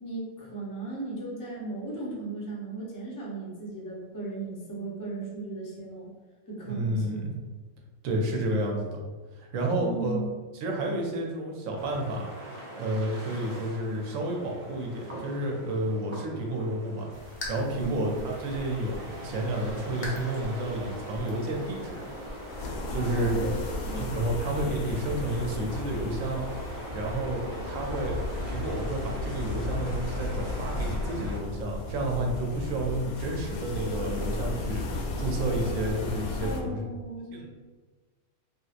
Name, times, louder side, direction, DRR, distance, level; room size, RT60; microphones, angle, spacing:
voice 1, 0.0-6.1 6.5-7.2 9.7-10.3 17.7-18.2 22.9-24.1 36.4-37.5, right 2 dB, 25° left, -5 dB, 0.4 m, -36 dB
voice 2, 6.7-7.4 8.0-9.0 9.3-10.2 10.5-12.3 12.8-22.0 22.9-23.5 23.9-26.4 26.9-28.2 28.5-34.8 35.2-36.8 37.3-37.5, right 1 dB, 75° right, 0 dB, 1.0 m, -31 dB
sound 1, 11.7-31.4, right 1 dB, 45° right, 0.3 m, -42 dB
sound 2, 17.1-22.7, left 2 dB, 55° left, 0.7 m, -43 dB
sound 3, 22.5-36.6, left 2 dB, 85° left, 1.0 m, -34 dB
3.3 x 2.8 x 2.4 m, 1.3 s
omnidirectional pair, 1.5 m